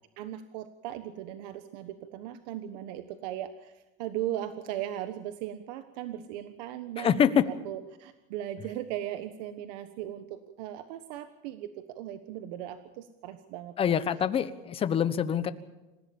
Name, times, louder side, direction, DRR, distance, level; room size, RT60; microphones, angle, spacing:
voice 1, 0.2-13.7, right 12 dB, 90° right, 9 dB, 1.4 m, -38 dB
voice 2, 7.0-7.4 13.8-15.5, left 8 dB, 25° left, 12 dB, 1.2 m, -25 dB
27.0 x 16.0 x 7.2 m, 1.1 s
cardioid pair, 160°, 21 cm